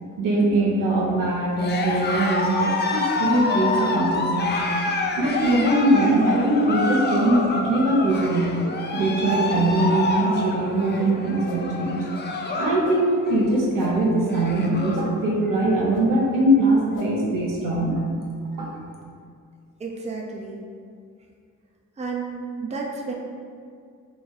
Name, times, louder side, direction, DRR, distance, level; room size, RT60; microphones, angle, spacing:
voice 1, 0.2-4.6 5.2-8.5 8.9-12.0 12.6-18.7, right 1 dB, 75° right, -3 dB, 0.8 m, -22 dB
Cheering, 1.5-12.8 13.1-13.5 14.0-14.1 14.2-15.1, left 3 dB, 30° left, 0.5 m, -27 dB
sound 1, 7.0-7.2 8.2-8.3 9.3-9.4 10.3-10.4 11.4-11.6 12.8-13.0 13.8-13.9 14.9-15.1 15.9-16.0 16.9-17.1, left 3 dB, 70° left, 0.7 m, -40 dB
voice 2, 19.8-20.6 22.0-23.1, right 4 dB, 20° right, -1 dB, 0.6 m, -31 dB
3.1 x 2.5 x 3.8 m, 2.2 s
supercardioid pair, 60°, 33 cm